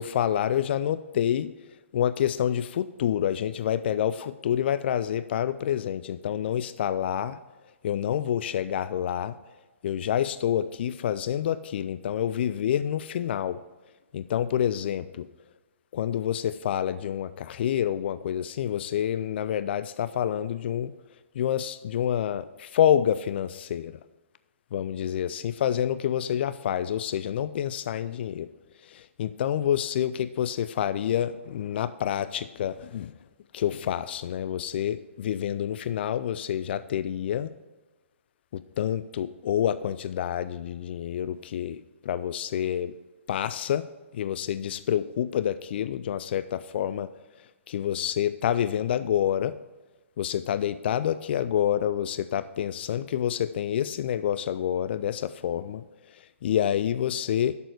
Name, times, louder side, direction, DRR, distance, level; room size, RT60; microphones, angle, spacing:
voice 1, 0.0-1.5 1.9-7.4 7.8-9.4 9.8-13.6 14.1-15.3 15.9-20.9 21.4-24.0 24.7-28.5 28.8-33.1 33.5-37.5 38.5-42.9 43.3-43.9 44.1-47.1 47.7-49.6 50.2-57.6, left 10 dB, 50° left, 14 dB, 0.4 m, -28 dB
11.5 x 6.9 x 4.8 m, 1.2 s
figure-of-eight pair, 130°, 7 cm